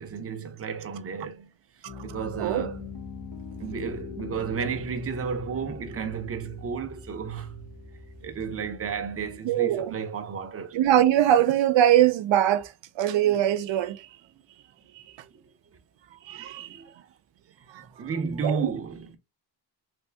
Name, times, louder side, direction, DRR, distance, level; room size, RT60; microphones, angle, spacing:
voice 1, 0.0-1.5 2.0-2.9 3.6-7.7 8.2-10.8 15.3-15.4 16.4-17.0 18.0-19.2, right 6 dB, 30° right, 0.7 m, -33 dB
Piano, 1.8-9.3, left 5 dB, 75° left, 1.1 m, -42 dB
voice 2, 9.5-9.9 10.7-12.7 13.0-14.0 16.3-16.7 17.7-17.8 18.4-18.7, right 11 dB, 85° right, 0.5 m, -22 dB
3.4 x 2.6 x 3.3 m
wide cardioid pair, 115°, 44 cm